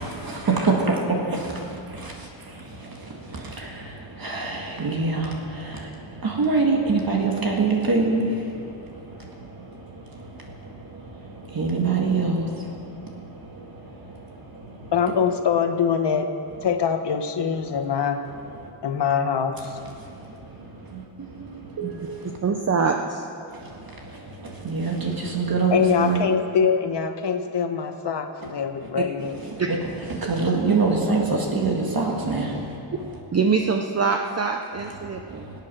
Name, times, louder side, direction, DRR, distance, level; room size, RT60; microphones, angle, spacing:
voice 1, 4.8-5.3 6.4-8.2 11.6-12.4 21.8-22.0 24.7-26.2 30.3-32.5, right 4 dB, 50° right, 0 dB, 1.9 m, -22 dB
voice 2, 14.9-16.3 16.6-18.2 18.8-19.7 25.7-29.4, left 6 dB, 65° left, 6 dB, 1.2 m, -23 dB
voice 3, 22.4-23.3 28.9-29.0 29.6-29.7 33.3-35.5, right 5 dB, 35° right, 4 dB, 0.7 m, -24 dB
23.5 x 8.7 x 6.2 m, 2.6 s
wide cardioid pair, 135°, 46 cm